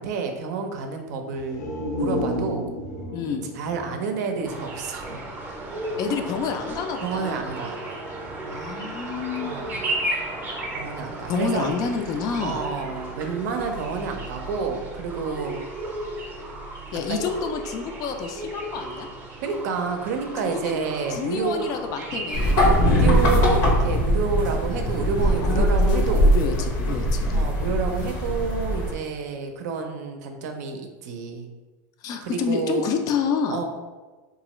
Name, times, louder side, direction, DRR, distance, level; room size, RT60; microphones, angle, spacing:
voice 1, 0.0-2.7 3.5-5.2 7.0-7.8 9.4-9.8 10.7-11.7 12.4-15.6 19.4-21.6 22.6-26.3 27.3-31.5 32.2-32.9 33.5-33.7, right 5 dB, 75° right, 4 dB, 0.5 m, -29 dB
sound 1, 1.3-5.1 5.4-5.5, left 1 dB, 90° left, 0.6 m, -31 dB
voice 2, 3.1-3.5 6.0-7.4 8.5-9.9 11.3-12.6 16.9-19.1 20.4-20.8 21.1-22.6 25.2-27.5 32.0-33.7, left 6 dB, 40° left, 5 dB, 0.4 m, -29 dB
sound 2, 4.4-23.0, right 1 dB, 20° right, 0.6 m, -34 dB
sound 3, 22.3-28.9, equal, 70° left, 0.9 m, -21 dB
2.9 x 2.4 x 3.0 m, 1.3 s
supercardioid pair, 120°, 9 cm